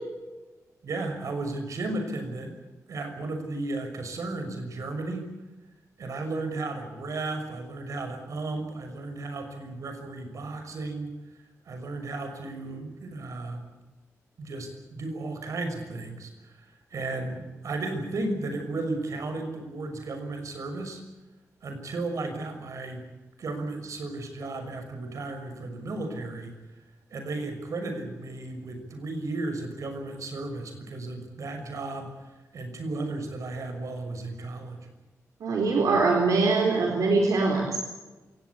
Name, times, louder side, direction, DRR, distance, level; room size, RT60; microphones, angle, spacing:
voice 1, 0.8-2.5 2.9-5.3 6.0-11.1 11.7-13.6 14.4-21.0 21.6-23.0 23.4-26.5 27.1-34.8, right 2 dB, 65° right, 6 dB, 6.3 m, -34 dB
voice 2, 35.4-37.8, right 3 dB, 80° right, 2 dB, 4.4 m, -23 dB
27.5 x 18.0 x 8.6 m, 1.2 s
wide cardioid pair, 145°, 6 cm